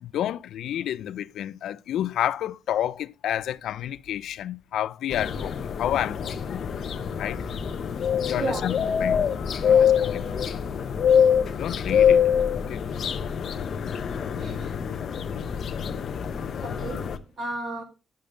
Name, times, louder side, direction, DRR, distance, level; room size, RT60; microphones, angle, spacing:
voice 1, 0.0-6.6 7.2-7.4 8.3-9.3 9.6-10.4 11.6-12.3 12.5-12.8, left 11 dB, 85° left, 0.4 m, -30 dB
sound 1, 5.1-17.2, left 8 dB, 50° left, 0.7 m, -25 dB
voice 2, 8.4-8.7 9.7-10.0 14.3-14.7 16.6-17.8, right 2 dB, 50° right, 1.8 m, -34 dB
10.0 x 6.6 x 3.3 m
wide cardioid pair, 180°, 0 cm